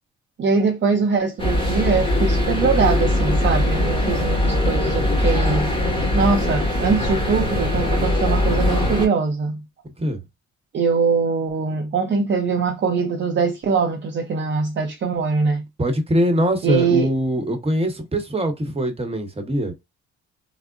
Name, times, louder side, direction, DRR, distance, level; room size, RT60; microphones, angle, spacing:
voice 1, 0.4-5.7 6.1-9.6 10.7-15.6 16.6-17.1, right 5 dB, 40° right, 0.6 m, -22 dB
sound 1, 1.4-9.1, left 1 dB, 15° left, 1.6 m, -21 dB
voice 2, 15.8-19.7, equal, 20° right, 1.0 m, -22 dB
3.5 x 2.0 x 2.5 m
cardioid pair, 90°, 30 cm